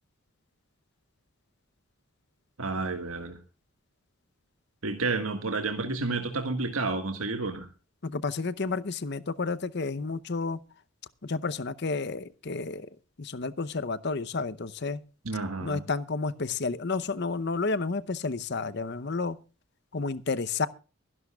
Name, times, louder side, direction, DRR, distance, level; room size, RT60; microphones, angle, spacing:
voice 1, 2.6-3.4 4.8-7.7 15.2-15.8, right 3 dB, 90° right, 1.7 m, -30 dB
voice 2, 8.0-10.6 11.2-12.9 13.2-15.0 15.6-19.4 19.9-20.7, left 4 dB, 50° left, 0.7 m, -31 dB
23.5 x 11.0 x 2.3 m
head